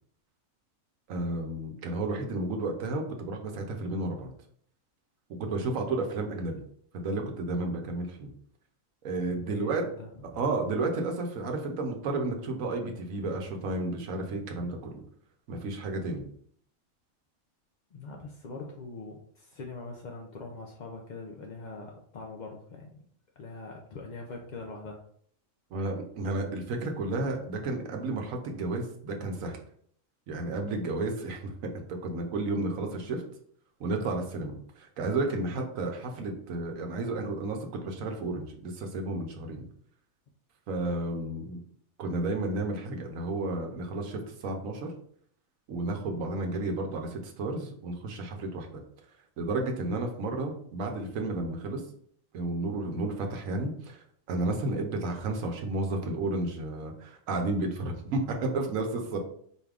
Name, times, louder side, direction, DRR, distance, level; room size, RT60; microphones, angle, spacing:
voice 1, 1.1-4.3 5.3-6.6 6.9-8.3 9.0-9.9 10.3-15.0 15.5-16.2 25.7-29.6 30.3-33.2 33.8-39.6 40.7-41.6 42.0-44.9 45.7-48.8 49.4-51.8 52.3-59.2, right 2 dB, 85° right, 3 dB, 1.2 m, -32 dB
voice 2, 9.3-10.4 17.9-23.0 23.4-25.0 35.5-35.7, left 3 dB, 60° left, 0 dB, 0.4 m, -43 dB
4.5 x 2.4 x 3.4 m, 0.63 s
omnidirectional pair, 1.4 m